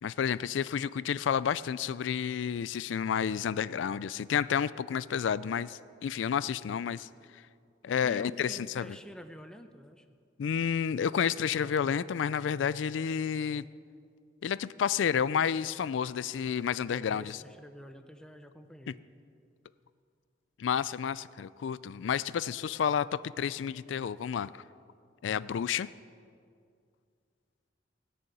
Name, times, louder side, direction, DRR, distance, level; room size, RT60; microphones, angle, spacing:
voice 1, 0.0-7.1 7.3-7.4 7.8-8.9 10.4-13.6 14.4-17.4 18.9-19.0 20.6-24.6 25.2-25.9, left 7 dB, 90° left, 17 dB, 0.4 m, -30 dB
voice 2, 8.0-10.2 16.9-19.0, equal, 5° left, 7 dB, 0.7 m, -48 dB
17.5 x 6.9 x 9.2 m, 2.3 s
head